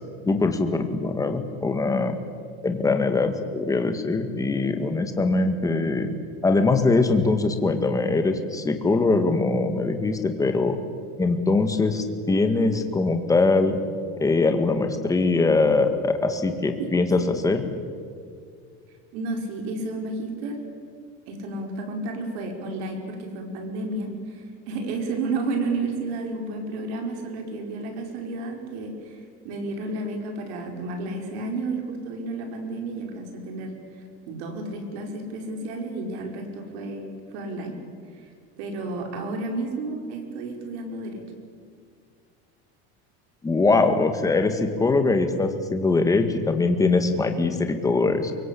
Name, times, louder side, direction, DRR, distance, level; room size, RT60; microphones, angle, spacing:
voice 1, 0.3-2.2 2.6-6.1 6.4-10.8 11.2-13.8 14.2-17.6 43.4-48.3, left 3 dB, 10° left, 7 dB, 1.8 m, -22 dB
voice 2, 19.1-20.6 21.3-33.7 34.3-37.8 38.1-38.3 38.6-41.2, right 2 dB, 85° right, 3 dB, 5.2 m, -31 dB
23.5 x 23.5 x 8.5 m, 2.2 s
cardioid pair, 165°, 31 cm